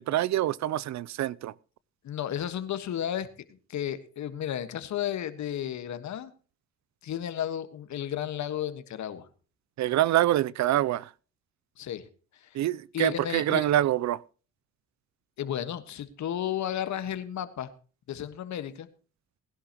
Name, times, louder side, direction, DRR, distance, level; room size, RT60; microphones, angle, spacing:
voice 1, 0.0-1.5 9.8-11.1 12.5-14.2, right 13 dB, 65° right, 0.6 m, -25 dB
voice 2, 2.0-3.3 3.7-6.3 7.0-9.3 11.8-12.0 12.3-12.6 12.9-13.6 15.4-17.7 18.1-18.9, left 10 dB, 70° left, 1.6 m, -33 dB
20.0 x 11.5 x 3.0 m
cardioid pair, 90°, 30 cm